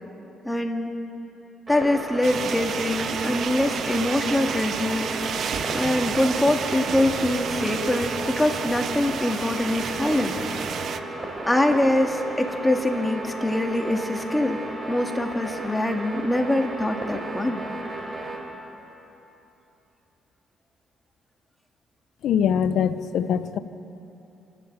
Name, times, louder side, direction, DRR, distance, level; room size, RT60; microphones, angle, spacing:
voice 1, 0.4-0.9 1.7-5.2 5.7-10.4 11.5-14.6 14.9-17.6, left 1 dB, 10° left, 3 dB, 2.1 m, -24 dB
sound 1, 1.7-18.4, right 2 dB, 20° right, 4.4 m, -34 dB
Rain from indoors, 2.2-11.0, right 7 dB, 65° right, 0.8 m, -31 dB
voice 2, 22.2-23.6, left 8 dB, 75° left, 12 dB, 0.8 m, -23 dB
27.0 x 12.0 x 8.2 m, 3.0 s
cardioid pair, 90°, 0 cm